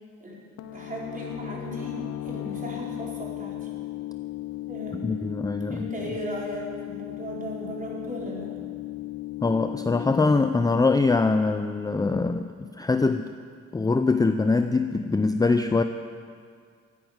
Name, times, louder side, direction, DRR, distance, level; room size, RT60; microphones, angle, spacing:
sound 1, 0.6-12.1, left 14 dB, 65° left, 0.9 m, -37 dB
voice 1, 0.7-3.7 4.7-5.2 5.7-8.5, equal, 25° right, -4 dB, 4.4 m, -36 dB
voice 2, 4.9-5.9 9.4-13.3 13.7-15.8, left 3 dB, 15° left, 8 dB, 0.5 m, -23 dB
13.0 x 10.0 x 8.0 m, 2.1 s
cardioid pair, 90°, 30 cm